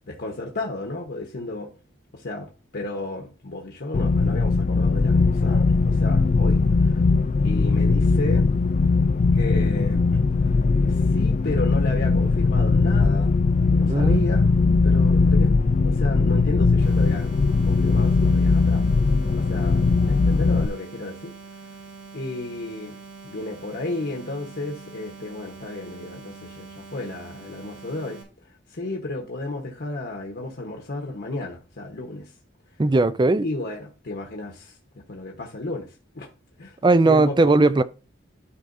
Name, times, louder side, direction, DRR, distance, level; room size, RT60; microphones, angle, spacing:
voice 1, 0.1-1.7 2.1-7.0 7.4-8.4 9.3-10.0 10.8-13.3 13.6-14.5 14.8-15.5 15.8-17.3 17.6-18.8 19.3-21.3 22.1-23.0 23.2-32.3 33.4-34.8 35.1-36.3 36.6-36.8 37.1-37.5, left 2 dB, 60° left, 1.1 m, -33 dB
sound 1, 3.9-20.7, left 4 dB, 40° left, 0.3 m, -19 dB
voice 2, 13.8-14.3 32.8-33.5 36.8-37.8, right 2 dB, 25° right, 0.4 m, -18 dB
sound 2, 16.8-28.2, right 5 dB, 85° right, 2.9 m, -44 dB
12.5 x 4.7 x 2.6 m
head